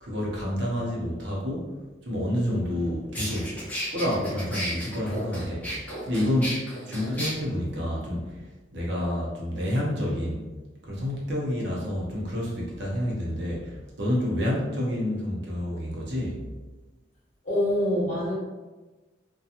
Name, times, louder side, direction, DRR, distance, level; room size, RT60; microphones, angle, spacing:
voice 1, 0.0-1.7 2.0-3.5 3.9-5.7 6.1-6.6 6.9-8.4 8.7-10.5 10.8-16.4, left 1 dB, 65° right, -4 dB, 0.7 m, -28 dB
sound 1, 2.7-2.8 3.1-7.3, equal, 10° left, 0.8 m, -33 dB
voice 2, 17.4-18.3, left 1 dB, 40° left, -8 dB, 1.1 m, -25 dB
2.8 x 2.2 x 2.4 m, 1.2 s
head